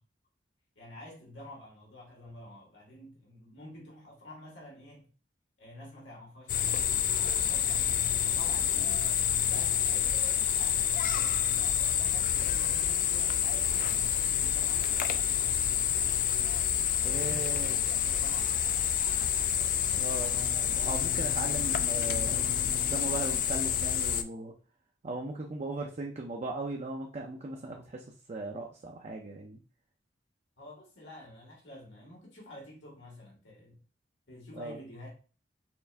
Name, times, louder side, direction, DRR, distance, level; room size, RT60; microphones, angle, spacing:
voice 1, 0.8-5.1 5.6-9.1 9.4-16.2 17.0-17.6 17.9-19.4 30.6-33.8 34.3-35.2, left 1 dB, 80° left, 1.9 m, -49 dB
night crekets, 6.5-24.2, left 9 dB, 45° left, 0.3 m, -28 dB
sound 1, 12.6-23.4, right 2 dB, 90° right, 0.7 m, -54 dB
voice 2, 17.0-17.8 19.9-24.5 25.0-29.6 34.6-34.8, right 2 dB, 40° right, 0.5 m, -38 dB
4.4 x 2.5 x 3.3 m
head